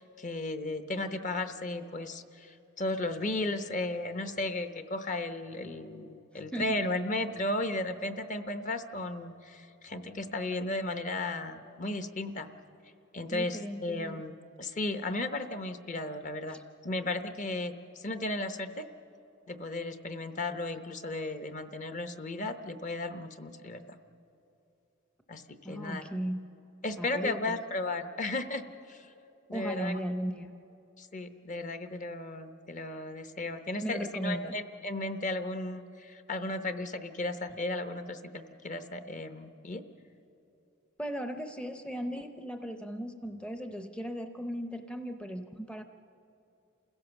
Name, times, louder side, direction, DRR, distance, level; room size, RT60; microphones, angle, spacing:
voice 1, 0.0-12.5 13.1-16.6 16.8-18.9 19.5-24.0 25.3-26.0 26.8-29.1 29.5-30.0 31.0-39.8, left 2 dB, 35° left, 9 dB, 0.8 m, -35 dB
voice 2, 6.5-6.8 13.3-14.2 16.5-16.6 25.6-26.4 27.0-27.5 29.5-30.6 33.8-34.6 41.0-45.8, equal, 5° left, 7 dB, 0.6 m, -37 dB
28.5 x 16.0 x 7.0 m, 2.8 s
head